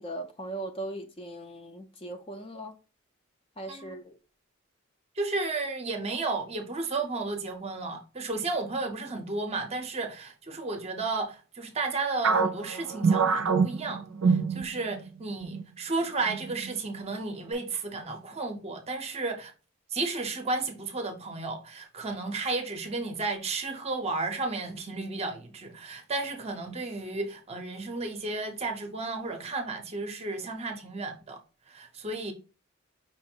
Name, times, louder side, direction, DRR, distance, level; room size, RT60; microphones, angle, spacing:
voice 1, 0.0-2.7 3.6-4.1, right 1 dB, 25° left, 0.5 m, -39 dB
voice 2, 3.7-4.0 5.2-19.5 19.9-31.4 31.7-32.3, right 3 dB, 30° right, 0.7 m, -33 dB
sound 1, 12.2-15.1 15.4-15.6 16.3-16.7, right 5 dB, 65° right, 0.4 m, -25 dB
5.6 x 2.0 x 4.3 m
head